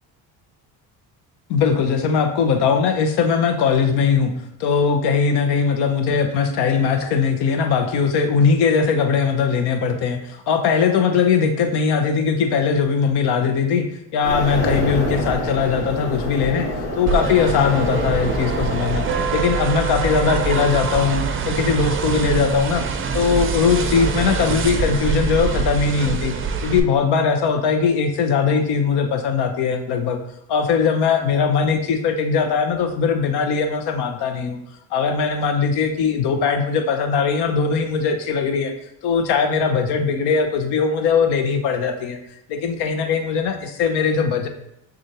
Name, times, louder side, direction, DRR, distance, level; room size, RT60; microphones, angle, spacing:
voice 1, 1.5-4.3 4.6-13.9 14.1-16.7 17.0-22.8 23.1-26.3 26.6-30.2 30.5-34.6 34.9-38.7 39.0-42.2 42.5-44.5, left 6 dB, 65° left, 6 dB, 0.8 m, -20 dB
sound 1, 14.2-19.3, left 1 dB, 85° left, 1.1 m, -26 dB
sound 2, 17.1-26.8, right 5 dB, 30° right, 0.5 m, -24 dB
6.1 x 2.5 x 2.9 m, 0.81 s
supercardioid pair, 70°, 43 cm